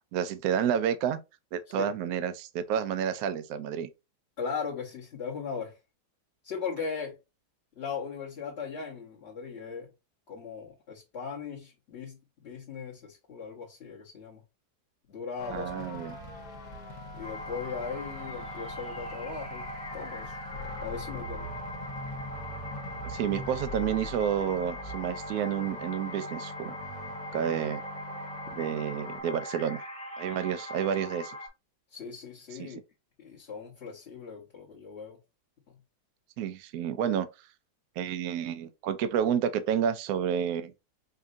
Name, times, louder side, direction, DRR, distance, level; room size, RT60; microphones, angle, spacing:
voice 1, 0.1-1.2 1.5-3.9 15.5-16.2 23.0-26.8 27.3-27.8 28.5-29.8 30.2-31.4 32.5-32.8 36.4-37.3 38.0-40.7, right 8 dB, 75° right, 0.8 m, -30 dB
voice 2, 4.4-5.7 6.4-7.2 7.8-9.9 10.3-14.4 15.1-15.7 17.1-20.4 20.8-21.5 31.9-32.8 33.2-35.2, left 5 dB, 40° left, 1.2 m, -38 dB
sound 1, 15.4-29.2, left 1 dB, 65° left, 1.6 m, -42 dB
sound 2, 17.2-31.5, equal, 5° left, 0.7 m, -41 dB
5.3 x 2.5 x 2.5 m
omnidirectional pair, 2.1 m